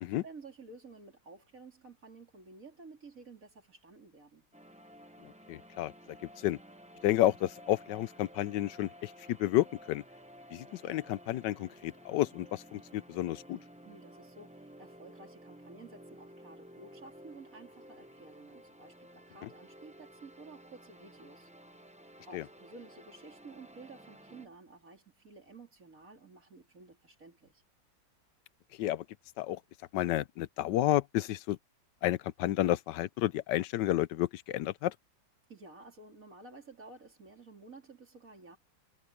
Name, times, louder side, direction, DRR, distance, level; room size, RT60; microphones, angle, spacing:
voice 1, 0.0-4.5 13.9-21.5 22.3-27.6 35.5-38.6, right 3 dB, 45° right, 3.8 m, -52 dB
sound 1, 4.5-24.5, equal, 10° right, 0.4 m, -54 dB
voice 2, 5.2-6.6 7.0-10.0 10.5-13.6 19.4-19.5 22.3-22.4 28.7-29.0 29.4-29.6 29.9-31.6 32.0-34.9, left 14 dB, 75° left, 1.2 m, -31 dB
omnidirectional pair, 2.1 m